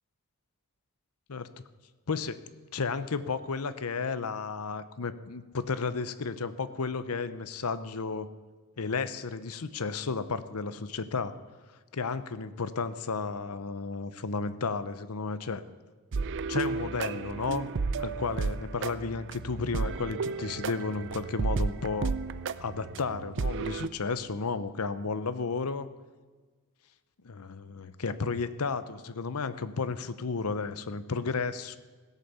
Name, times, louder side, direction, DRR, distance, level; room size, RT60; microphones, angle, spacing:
voice 1, 2.7-8.3 8.8-11.3 11.9-15.6 16.5-17.7 18.0-22.1 22.6-25.9 27.2-31.8, left 4 dB, 75° left, 13 dB, 0.8 m, -33 dB
sound 1, 16.1-23.9, right 4 dB, 55° right, 0.5 m, -33 dB
16.5 x 8.4 x 7.0 m, 1.4 s
head